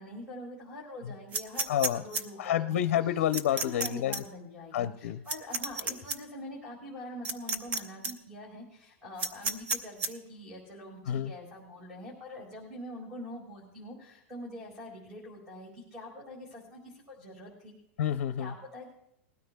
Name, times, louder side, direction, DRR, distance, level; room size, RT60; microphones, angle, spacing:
voice 1, 0.0-2.8 3.5-17.7 18.4-18.9, left 1 dB, 5° right, -2 dB, 2.1 m, -44 dB
sound 1, 1.3-2.2 3.3-3.9 4.1-4.2 5.3-6.2 7.2-7.8 8.0-8.1 9.2-10.1, right 3 dB, 20° right, 0.6 m, -31 dB
voice 2, 1.7-2.0 2.4-4.2 4.7-5.2 11.1-11.3 18.0-18.5, left 10 dB, 65° left, 9 dB, 0.6 m, -29 dB
20.0 x 13.0 x 2.2 m, 0.80 s
supercardioid pair, 175°, 7 cm